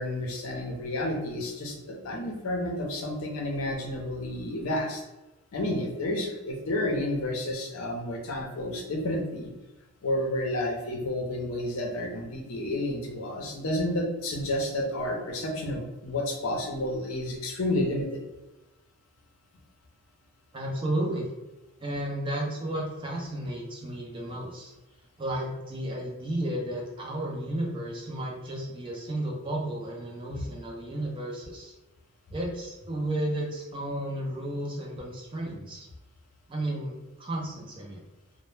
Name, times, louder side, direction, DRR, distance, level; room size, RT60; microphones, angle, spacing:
voice 1, 0.0-5.0 5.5-9.5 10.0-18.2, left 1 dB, 65° left, 0 dB, 0.5 m, -30 dB
voice 2, 20.5-21.3 21.8-24.7 25.2-31.7 32.3-35.9 36.5-38.0, right 1 dB, 25° right, -2 dB, 0.4 m, -33 dB
2.1 x 2.0 x 3.1 m, 1.0 s
head